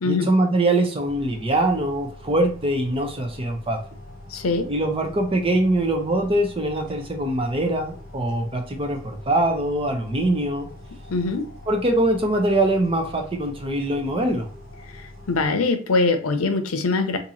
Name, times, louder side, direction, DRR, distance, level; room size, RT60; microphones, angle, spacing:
voice 1, 0.0-3.8 4.7-10.7 11.7-14.5, right 1 dB, 25° right, 3 dB, 0.7 m, -23 dB
sound 1, 1.0-15.5, left 1 dB, 45° right, 1.3 m, -43 dB
voice 2, 4.3-4.7 11.1-11.5 14.9-15.0 15.3-17.2, left 3 dB, 85° left, 7 dB, 0.6 m, -22 dB
2.8 x 2.6 x 4.0 m, 0.41 s
head